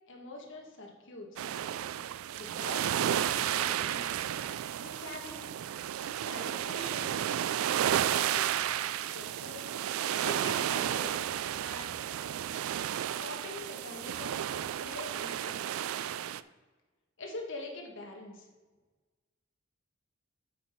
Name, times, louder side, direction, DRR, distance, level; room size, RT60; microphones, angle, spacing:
voice 1, 0.1-1.5 2.4-4.1 4.8-5.5 6.0-7.1 8.0-8.6 8.9-9.6 10.2-11.2 11.6-12.0 13.2-14.4 14.8-15.7 17.2-18.5, left 2 dB, 60° left, 1 dB, 1.6 m, -44 dB
sound 1, 1.4-16.4, right 10 dB, 80° right, 0.3 m, -32 dB
8.3 x 5.9 x 4.5 m, 1.3 s
head